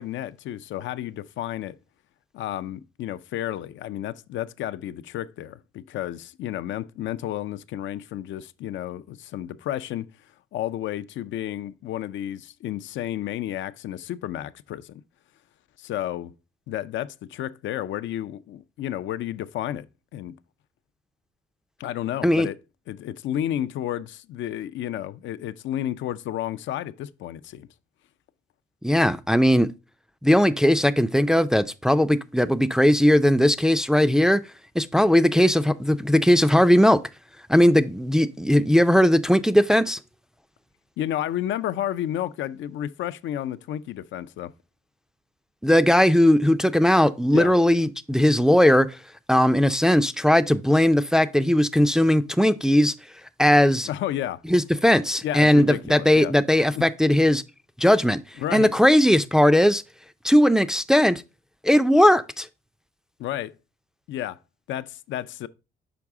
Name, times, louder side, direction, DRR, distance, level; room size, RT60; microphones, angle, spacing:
voice 1, 0.0-1.8 2.3-10.1 10.5-15.0 15.8-16.3 16.7-19.9 20.1-20.4 21.8-22.6 22.9-27.7 41.0-44.5 47.3-47.5 53.9-54.4 55.2-56.3 56.7-56.8 58.4-58.7 63.2-63.5 64.1-64.4 64.7-65.5, left 12 dB, 70° left, 0.4 m, -31 dB
voice 2, 28.8-29.7 30.2-34.4 34.8-37.0 37.5-40.0 45.6-49.0 49.3-52.9 53.4-53.9 54.5-57.4 57.8-58.2 58.5-59.8 60.2-61.2 61.6-62.5, equal, 5° right, 0.4 m, -18 dB
6.0 x 4.7 x 3.5 m
cardioid pair, 90°, 20 cm